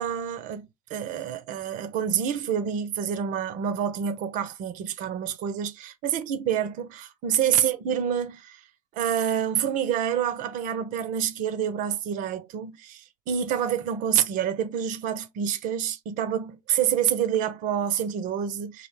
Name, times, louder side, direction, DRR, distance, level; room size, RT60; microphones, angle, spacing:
voice 1, 0.0-8.6 8.9-18.9, right 9 dB, 45° right, 0.5 m, -27 dB
2.3 x 2.0 x 3.1 m
hypercardioid pair, 80°, 18 cm